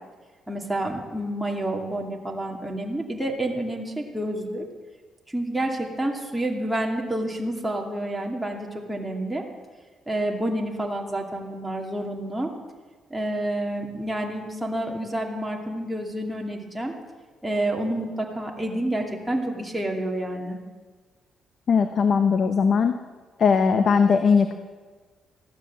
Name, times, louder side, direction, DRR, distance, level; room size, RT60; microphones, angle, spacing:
voice 1, 0.5-4.6 5.3-9.4 10.1-12.5 13.1-16.9 17.4-20.6, right 1 dB, 5° right, 0 dB, 2.5 m, -29 dB
voice 2, 21.7-23.0 23.4-24.5, left 5 dB, 55° left, 8 dB, 1.0 m, -19 dB
15.5 x 12.0 x 7.4 m, 1.4 s
cardioid pair, 90°, 0 cm